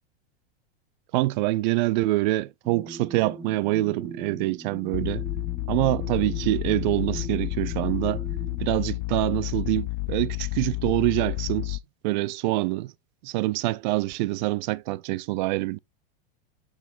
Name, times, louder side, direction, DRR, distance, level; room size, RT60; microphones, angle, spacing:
voice 1, 1.1-5.2 5.7-8.2 8.6-11.8 12.0-12.9 13.2-15.8, right 18 dB, 50° right, 0.4 m, -25 dB
sound 1, 2.6-8.7, right 3 dB, 5° right, 1.2 m, -41 dB
sound 2, 4.9-11.8, left 23 dB, 50° left, 0.6 m, -30 dB
7.3 x 6.4 x 2.5 m
supercardioid pair, 150°, 31 cm